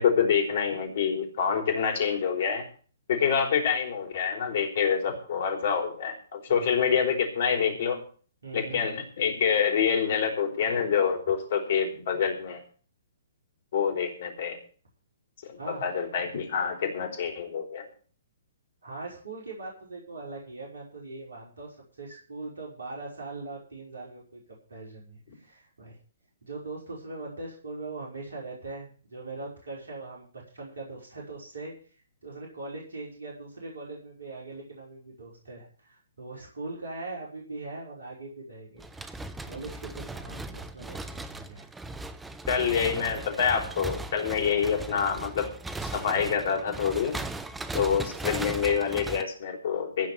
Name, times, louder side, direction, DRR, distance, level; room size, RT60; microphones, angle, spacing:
voice 1, 0.0-2.7 3.1-8.0 8.5-12.6 13.7-14.6 15.4-17.9 42.5-45.5 45.8-47.1 47.7-50.1, left 7 dB, 50° left, 3 dB, 4.4 m, -26 dB
voice 2, 8.4-8.9 15.6-15.9 18.8-24.4 24.7-26.0 26.4-31.7 32.2-39.2 39.4-41.7 45.0-45.1 47.8-48.0, right 3 dB, 65° right, -3 dB, 5.3 m, -41 dB
sound 1, 38.8-49.2, right 2 dB, 5° right, 1.0 m, -38 dB
16.0 x 5.4 x 9.5 m, 0.42 s
figure-of-eight pair, 120°, 0 cm